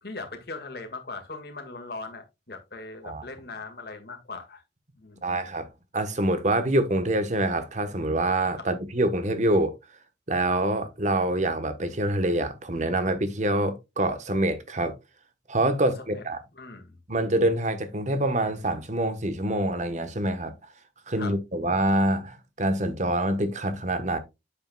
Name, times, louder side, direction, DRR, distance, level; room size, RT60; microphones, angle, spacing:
voice 1, 0.0-4.6 5.0-5.3 8.6-8.7 15.8-16.2 16.6-17.0 21.2-21.3, left 3 dB, 55° left, 1.9 m, -39 dB
voice 2, 5.2-9.7 10.3-14.9 15.5-16.4 17.1-20.5 21.1-24.2, right 1 dB, 40° right, 1.1 m, -26 dB
8.7 x 7.4 x 2.3 m
head